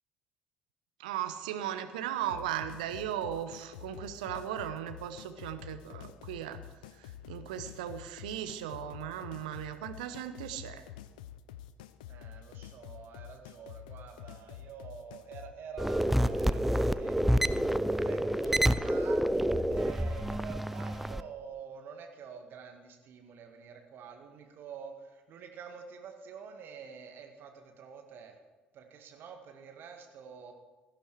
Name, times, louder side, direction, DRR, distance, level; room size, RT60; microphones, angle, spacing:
voice 1, 1.0-6.6 6.9-10.9, right 10 dB, 70° right, 9 dB, 0.9 m, -37 dB
sound 1, 2.3-15.5, left 10 dB, 70° left, 0.6 m, -48 dB
voice 2, 12.1-17.2 17.9-28.4 28.7-30.5, right 6 dB, 50° right, 4 dB, 2.0 m, -47 dB
sound 2, 15.8-21.2, equal, 5° right, 0.5 m, -28 dB
17.0 x 11.5 x 4.7 m, 1.3 s
figure-of-eight pair, 50°, 4 cm